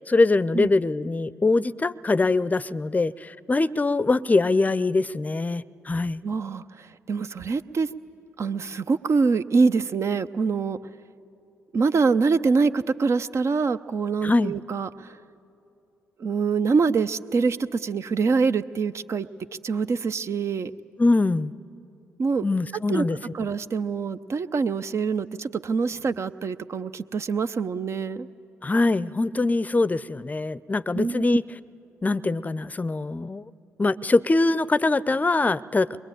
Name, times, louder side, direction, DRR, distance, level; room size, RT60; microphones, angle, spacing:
voice 1, 0.0-6.2 14.2-14.5 21.0-21.5 22.4-23.2 28.6-31.4 32.0-33.5 33.8-35.9, left 3 dB, 25° left, 18 dB, 0.6 m, -23 dB
voice 2, 6.2-7.9 8.4-10.8 11.7-15.1 16.2-19.3 19.6-20.7 22.2-22.5 22.9-23.0 23.3-28.3 30.9-31.4, right 4 dB, 45° right, 12 dB, 0.7 m, -25 dB
22.5 x 22.5 x 9.0 m, 2.7 s
hypercardioid pair, 40°, 7 cm